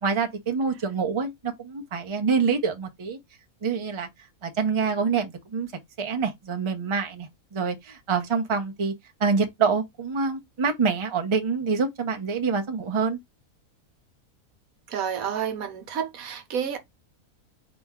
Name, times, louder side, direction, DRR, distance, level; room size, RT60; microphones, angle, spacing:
voice 1, 0.0-3.2 3.6-4.1 4.4-5.7 6.0-8.9 9.2-13.2, right 5 dB, 30° right, 0.5 m, -26 dB
voice 2, 14.9-16.8, right 8 dB, 70° right, 1.2 m, -30 dB
4.2 x 3.0 x 3.6 m
omnidirectional pair, 1.6 m